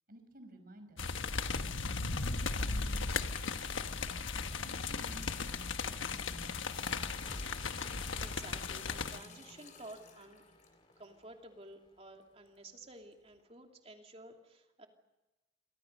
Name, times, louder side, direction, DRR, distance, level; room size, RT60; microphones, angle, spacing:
voice 1, 0.1-1.2 1.6-3.1 3.5-4.1 4.6-6.7, right 1 dB, 50° right, 7 dB, 5.2 m, -55 dB
sound 1, 1.0-9.2, left 4 dB, 80° left, 1.3 m, -36 dB
sound 2, 1.2-11.2 11.9-12.0 12.2-12.3 13.3-13.4, left 4 dB, 40° left, 3.7 m, -54 dB
sound 3, 6.7-12.1, left 1 dB, 25° left, 3.9 m, -52 dB
voice 2, 8.2-10.4 11.0-14.9, right 2 dB, 30° right, 3 dB, 2.7 m, -52 dB
29.0 x 24.0 x 5.4 m, 1.1 s
head